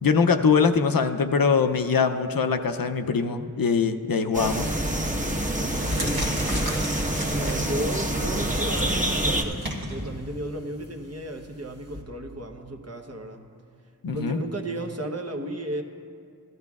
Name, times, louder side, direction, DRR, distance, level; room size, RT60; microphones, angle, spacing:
voice 1, 0.0-4.7 14.0-14.4, left 5 dB, 70° left, 7 dB, 0.6 m, -22 dB
sound 1, 4.3-9.4, right 1 dB, 20° right, 1.1 m, -26 dB
sound 2, 5.0-5.1 5.5-12.0, equal, 75° right, 1.5 m, -35 dB
voice 2, 5.9-6.4 7.3-13.5 14.1-15.8, right 1 dB, 45° right, 4 dB, 0.9 m, -33 dB
16.0 x 12.0 x 2.4 m, 2.3 s
wide cardioid pair, 50°, 36 cm